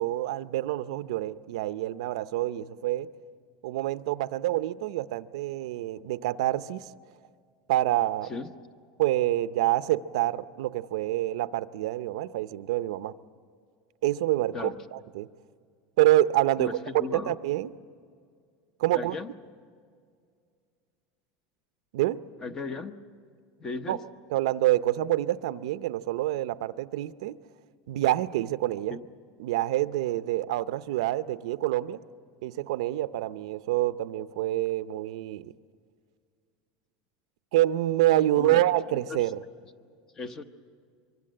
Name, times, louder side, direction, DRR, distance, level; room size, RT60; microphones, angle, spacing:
voice 1, 0.0-3.1 3.6-6.9 7.7-8.3 9.0-13.1 14.0-15.3 16.0-16.8 17.1-17.7 18.8-19.2 21.9-22.2 23.9-24.0 24.3-27.4 27.9-29.0 29.4-32.0 32.4-35.5 37.5-39.4, right 15 dB, 75° right, 14 dB, 0.6 m, -27 dB
voice 2, 16.6-17.4 18.9-19.3 22.4-22.9 23.6-24.0 28.9-29.0 38.4-39.3 40.1-40.4, left 3 dB, 20° left, 10 dB, 0.9 m, -36 dB
24.0 x 24.0 x 7.8 m, 2.1 s
supercardioid pair, 175°, 3 cm